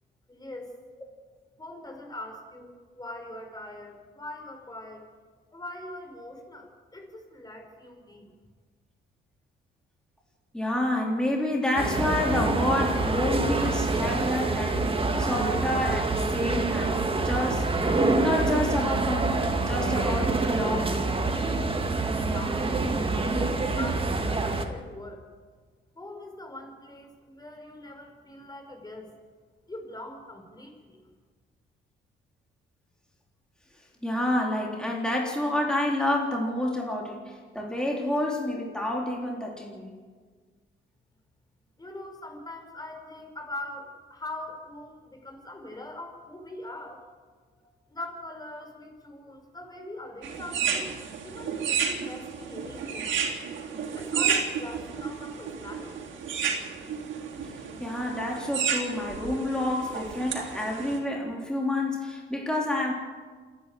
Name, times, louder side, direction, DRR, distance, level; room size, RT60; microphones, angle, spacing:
voice 1, 0.3-0.7 1.6-5.1 5.5-8.3 22.2-22.9 23.3-25.2 26.0-29.1 29.7-31.0 41.8-47.0 47.9-51.0 51.2-53.3 53.9-56.1, left 1 dB, 20° left, 3 dB, 5.5 m, -42 dB
voice 2, 10.5-17.7 18.2-21.1 34.0-39.9 57.8-62.9, left 1 dB, 5° left, -1 dB, 3.9 m, -29 dB
sound 1, 11.8-24.7, right 3 dB, 25° right, 2.2 m, -26 dB
sound 2, 50.2-61.0, right 7 dB, 70° right, 3.6 m, -32 dB
27.5 x 10.5 x 9.3 m, 1.5 s
cardioid pair, 90°, 20 cm